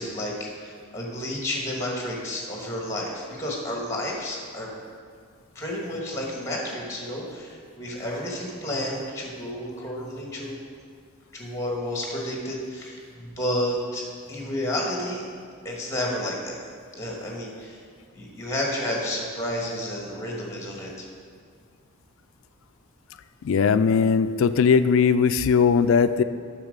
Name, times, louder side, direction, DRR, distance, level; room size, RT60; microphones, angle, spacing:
voice 1, 0.0-4.7 5.5-10.6 11.3-15.2 15.6-16.6 17.0-17.8 18.1-20.9, left 1 dB, 15° left, -1 dB, 1.3 m, -31 dB
voice 2, 23.4-26.2, left 6 dB, 65° left, 12 dB, 0.3 m, -19 dB
7.1 x 6.3 x 5.2 m, 2.2 s
head